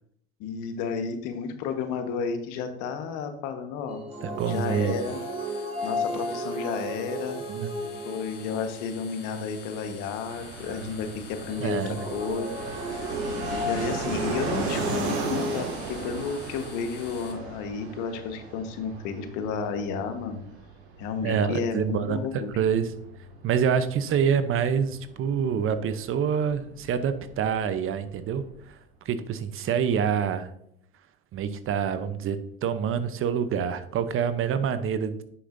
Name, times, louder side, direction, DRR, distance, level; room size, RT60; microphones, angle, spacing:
voice 1, 0.4-4.0 4.5-5.2 5.8-7.4 7.8-12.6 13.5-20.4 21.0-22.5, left 5 dB, 65° left, 7 dB, 1.3 m, -32 dB
sound 1, 3.9-8.9 11.5-15.5, equal, 20° right, 3.3 m, -34 dB
voice 2, 4.2-4.9 7.5-7.7 11.6-12.0 21.2-22.2 22.6-22.9 23.4-28.8 29.1-30.5 31.3-35.2, right 7 dB, 40° right, 12 dB, 0.7 m, -26 dB
sound 2, 4.4-17.3, left 5 dB, 30° left, 1.9 m, -48 dB
Fixed-wing aircraft airplane, 10.3-28.6, right 3 dB, 90° right, 1.9 m, -37 dB
9.2 x 6.9 x 2.6 m, 0.73 s
supercardioid pair, 90°, 32 cm